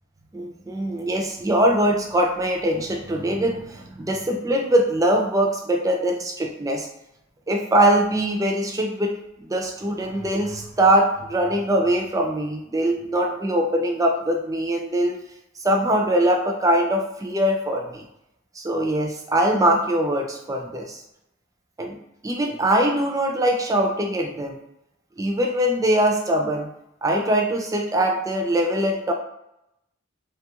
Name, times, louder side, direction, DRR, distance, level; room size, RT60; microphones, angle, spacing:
voice 1, 0.3-6.9 7.5-9.1 9.4-15.2 15.6-18.0 18.5-21.0 21.8-22.0 22.2-24.6 25.2-26.7 27.0-29.1, right 1 dB, 15° right, 1 dB, 0.4 m, -22 dB
3.1 x 2.3 x 2.8 m, 0.84 s
head